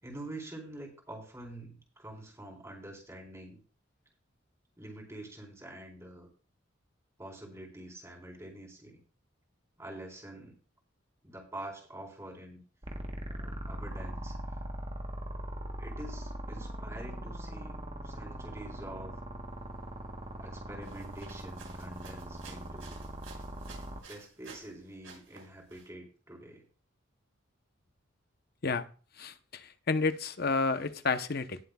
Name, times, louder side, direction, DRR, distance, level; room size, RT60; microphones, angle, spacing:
voice 1, 0.0-3.6 4.8-6.3 7.2-9.0 9.8-10.5 11.2-12.6 13.3-14.4 15.8-19.1 20.4-23.0 24.1-26.7, right 1 dB, 15° right, 0 dB, 4.1 m, -46 dB
sound 1, 12.8-24.0, right 1 dB, 30° right, 1.2 m, -40 dB
sound 2, 20.8-24.7 25.0-25.9, right 5 dB, 90° right, 5.3 m, -53 dB
voice 2, 29.2-31.6, left 4 dB, 55° left, 10 dB, 0.9 m, -30 dB
19.5 x 7.7 x 2.4 m, 0.38 s
head